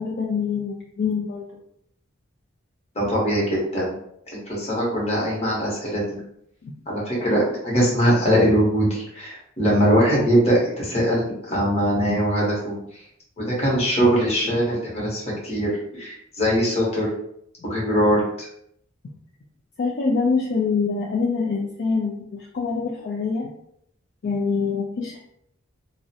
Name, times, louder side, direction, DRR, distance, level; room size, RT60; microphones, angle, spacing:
voice 1, 0.0-1.4 6.6-6.7 19.8-23.5 24.2-25.2, left 4 dB, 55° left, -3 dB, 0.3 m, -25 dB
voice 2, 2.9-4.0 4.3-6.2 6.9-12.8 13.4-17.1 17.6-18.5, equal, 30° left, -5 dB, 0.9 m, -21 dB
2.4 x 2.0 x 2.7 m, 0.73 s
head